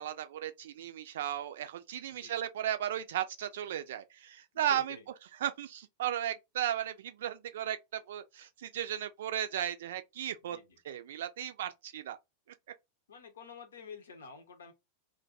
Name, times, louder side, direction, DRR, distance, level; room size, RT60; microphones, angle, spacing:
voice 1, 0.0-5.0 5.4-10.6 10.9-12.2, right 11 dB, 60° right, 0.4 m, -35 dB
voice 2, 2.1-2.4 4.6-5.1 10.4-10.8 13.1-14.7, left 6 dB, 65° left, 0.8 m, -49 dB
2.5 x 2.2 x 3.8 m
figure-of-eight pair, 90°, 0 cm